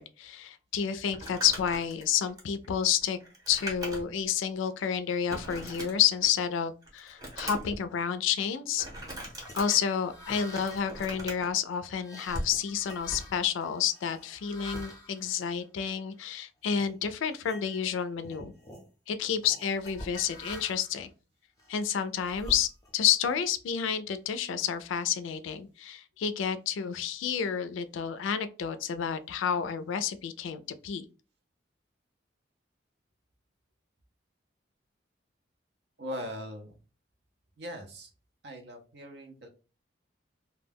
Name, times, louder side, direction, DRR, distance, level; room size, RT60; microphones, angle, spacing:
voice 1, 0.0-3.2 3.5-8.9 9.5-18.5 19.1-21.1 21.7-22.7 22.9-31.0, left 8 dB, 85° left, 0.3 m, -30 dB
Crumpling crinkling, 1.1-4.3 4.7-4.8 5.3-6.4 6.8-7.8 8.8-9.6 10.3-11.5 12.3-12.5, equal, 20° right, 0.7 m, -40 dB
sound 1, 9.2-16.2 16.7-16.9 17.3-17.9 18.2-18.9 19.5-21.0 21.6-23.1, left 1 dB, 15° left, 0.6 m, -46 dB
voice 2, 36.0-36.8 37.6-38.1 38.4-39.5, equal, 60° right, 0.6 m, -40 dB
2.2 x 2.1 x 3.3 m
head